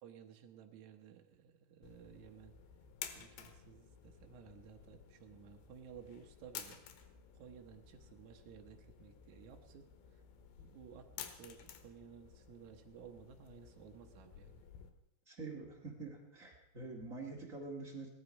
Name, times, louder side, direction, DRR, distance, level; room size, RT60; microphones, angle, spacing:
voice 1, 0.0-2.5 3.1-7.0 7.4-10.2 10.6-14.6, right 8 dB, 90° right, 4 dB, 1.6 m, -56 dB
sound 1, 1.8-14.9, left 9 dB, 85° left, 3.3 m, -54 dB
voice 2, 15.3-18.1, right 3 dB, 50° right, -1 dB, 0.9 m, -46 dB
18.0 x 13.0 x 5.3 m, 0.82 s
omnidirectional pair, 5.0 m